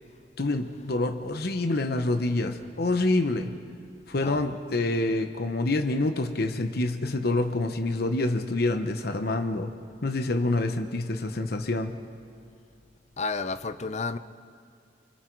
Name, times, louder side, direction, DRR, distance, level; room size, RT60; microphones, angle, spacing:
voice 1, 0.4-3.5 4.1-9.7 10.0-12.0, left 2 dB, 60° left, 7 dB, 0.9 m, -27 dB
voice 2, 13.2-14.2, left 4 dB, 40° left, 13 dB, 0.6 m, -31 dB
25.5 x 25.0 x 4.6 m, 2.4 s
head